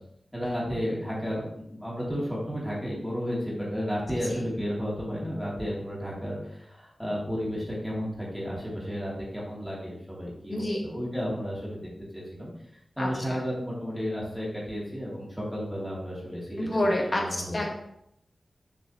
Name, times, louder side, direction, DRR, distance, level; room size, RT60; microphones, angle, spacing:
voice 1, 0.3-11.8 12.1-12.5 13.0-17.6, equal, ahead, -6 dB, 2.8 m, -33 dB
voice 2, 10.5-10.8 13.0-13.4 16.6-17.7, left 1 dB, 40° left, -1 dB, 1.9 m, -28 dB
7.1 x 5.4 x 3.2 m, 0.76 s
cardioid pair, 55°, 0 cm